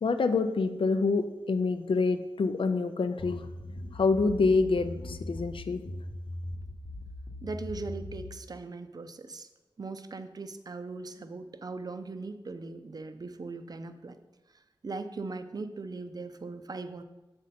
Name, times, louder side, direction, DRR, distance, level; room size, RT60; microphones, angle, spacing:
voice 1, 0.0-5.9, left 4 dB, 75° left, 10 dB, 0.5 m, -27 dB
sound 1, 3.2-8.4, left 1 dB, 40° left, 0.9 m, -40 dB
voice 2, 7.4-9.5 9.8-14.2 14.8-17.0, right 3 dB, 45° right, 9 dB, 0.5 m, -39 dB
7.2 x 5.2 x 4.2 m, 1.1 s
wide cardioid pair, 95°, 9 cm